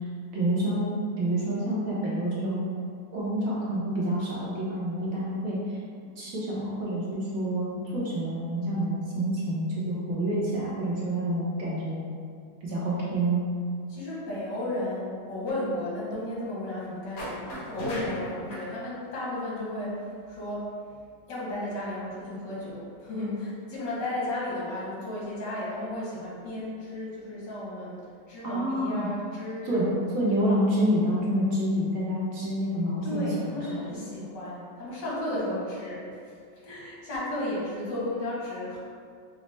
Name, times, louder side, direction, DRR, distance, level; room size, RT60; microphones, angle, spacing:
voice 1, 0.3-0.9 1.2-2.6 3.1-5.8 6.2-12.0 12.6-13.5 28.4-29.1 29.6-33.3, right 1 dB, 60° right, -7 dB, 1.0 m, -28 dB
voice 2, 13.9-21.0 21.3-30.0 33.0-36.1 36.5-38.8, left 1 dB, 85° left, -7 dB, 1.7 m, -34 dB
sound 1, 17.2-18.7, equal, 65° left, 1.6 m, -36 dB
5.0 x 2.0 x 3.1 m, 2.2 s
omnidirectional pair, 1.9 m